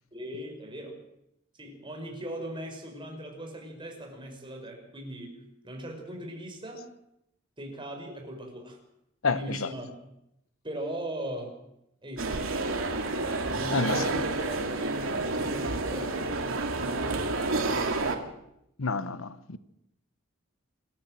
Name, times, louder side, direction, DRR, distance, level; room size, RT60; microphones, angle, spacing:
voice 1, 0.1-1.0 1.5-6.8 7.6-8.8 9.2-9.9 10.6-11.5 12.0-12.5 13.5-18.2, right 1 dB, 25° right, 5.5 m, -39 dB
voice 2, 9.2-9.7 13.7-14.1 18.8-19.6, left 4 dB, 90° left, 1.1 m, -29 dB
sound 1, 12.2-18.2, right 3 dB, 80° right, 2.7 m, -29 dB
26.5 x 14.5 x 7.7 m
head